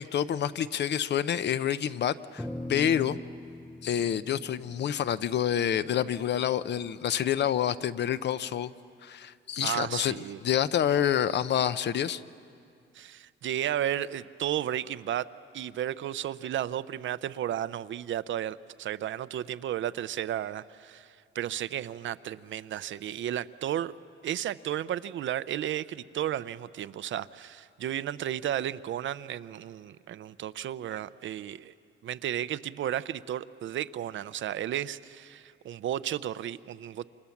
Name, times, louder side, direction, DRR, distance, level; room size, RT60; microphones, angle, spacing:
voice 1, 0.0-3.2 3.8-8.7 9.0-10.1 10.4-12.2, left 9 dB, 55° left, 14 dB, 0.6 m, -28 dB
sound 1, 2.4-6.9, left 1 dB, 5° left, 0.6 m, -42 dB
voice 2, 9.6-10.4 12.9-15.3 15.5-23.9 24.2-31.7 32.0-37.1, right 11 dB, 65° right, 15 dB, 0.6 m, -33 dB
29.0 x 26.5 x 7.2 m, 2.4 s
wide cardioid pair, 175°, 21 cm